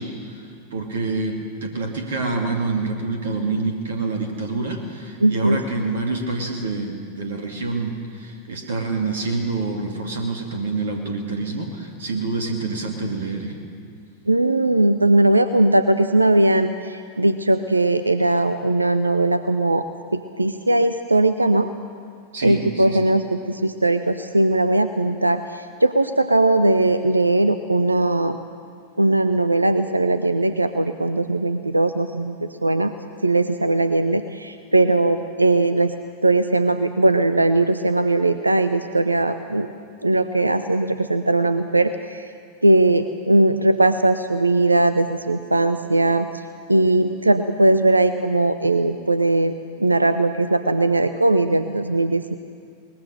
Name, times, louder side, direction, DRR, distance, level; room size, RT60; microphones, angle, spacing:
voice 1, 0.0-13.6 22.3-23.1, right 3 dB, 65° right, 3 dB, 2.2 m, -27 dB
voice 2, 5.2-5.6 14.3-19.8 20.1-21.7 22.4-28.4 29.0-32.9 33.2-35.9 36.2-39.7 40.0-42.2 42.6-46.3 46.7-52.3, right 2 dB, 85° right, 11 dB, 0.6 m, -19 dB
22.0 x 20.0 x 6.6 m, 2.2 s
figure-of-eight pair, 90°, 0 cm